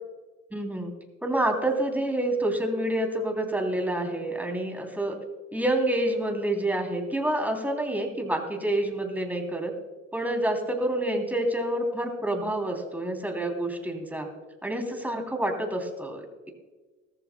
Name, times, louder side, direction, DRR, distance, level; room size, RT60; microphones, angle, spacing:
voice 1, 0.5-0.9 1.2-5.2 5.5-9.7 10.1-14.3 14.6-16.5, right 1 dB, 5° right, 2 dB, 3.1 m, -28 dB
18.0 x 14.5 x 2.2 m, 1.3 s
cardioid pair, 90°, 30 cm